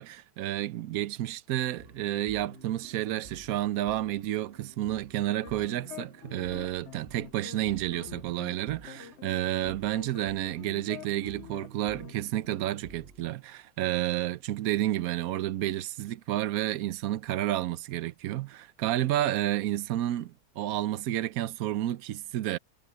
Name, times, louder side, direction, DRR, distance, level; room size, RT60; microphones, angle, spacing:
voice 1, 0.0-22.6, right 13 dB, 75° right, 1.1 m, -30 dB
sound 1, 1.8-13.3, right 1 dB, 40° right, 6.9 m, -52 dB
sound 2, 5.4-8.6 8.9-12.1, left 11 dB, 60° left, 0.8 m, -47 dB
omnidirectional pair, 1.6 m